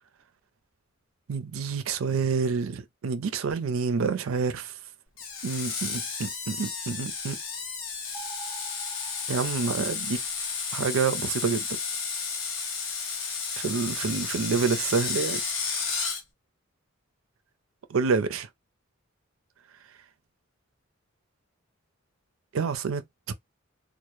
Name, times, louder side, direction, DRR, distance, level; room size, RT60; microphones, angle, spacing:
voice 1, 1.3-4.8 5.4-7.4 9.3-10.2 10.7-11.7 13.6-15.4 17.9-18.5 22.5-23.0, right 5 dB, 85° right, 0.4 m, -28 dB
Screech, 5.2-16.2, left 5 dB, 75° left, 0.8 m, -32 dB
sound 1, 8.1-10.6, right 5 dB, 20° right, 0.6 m, -46 dB
2.1 x 2.0 x 2.9 m
head